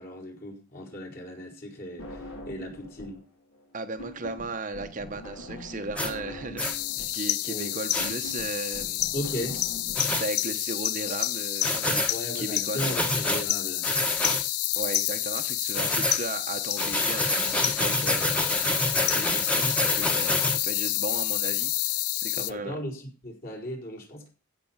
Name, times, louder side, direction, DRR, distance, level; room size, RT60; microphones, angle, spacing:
voice 1, 0.0-3.2 7.4-7.7 9.1-9.6 12.1-13.9 22.3-24.3, equal, 45° left, 4.7 m, -36 dB
sound 1, 2.0-3.3 3.5-10.0, left 1 dB, 70° left, 4.0 m, -42 dB
voice 2, 3.7-9.0 9.5-9.6 10.1-12.1 12.3-12.9 14.8-22.8, right 2 dB, 35° right, 0.9 m, -36 dB
Accum Shift, 5.9-6.1 6.6-6.7 7.9-8.1 9.9-10.2 11.6-12.1 12.8-13.4 13.8-14.4 15.7-16.2 16.8-20.6, left 1 dB, 5° left, 1.4 m, -27 dB
sound 2, 6.6-22.5, left 15 dB, 90° left, 0.6 m, -29 dB
15.5 x 5.9 x 7.3 m
head